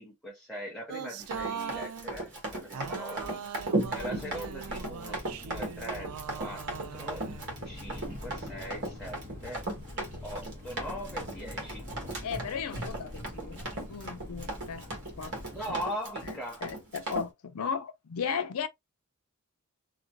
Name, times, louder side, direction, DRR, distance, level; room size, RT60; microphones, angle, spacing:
voice 1, 0.0-3.6 3.9-6.1 6.4-7.2 7.6-9.6 10.2-11.9 15.3-16.6, equal, 5° left, 0.8 m, -41 dB
sound 1, 0.9-2.1 2.7-7.6, right 8 dB, 80° right, 0.3 m, -41 dB
Run, 1.2-17.3, right 2 dB, 55° right, 1.2 m, -37 dB
voice 2, 2.7-3.4 12.2-13.6 13.9-14.8 15.2-15.4 15.7-15.8 16.6-18.7, left 6 dB, 80° left, 0.5 m, -36 dB
Bird vocalization bird call bird song, 3.8-15.8, left 1 dB, 35° right, 1.5 m, -45 dB
2.9 x 2.4 x 2.6 m
head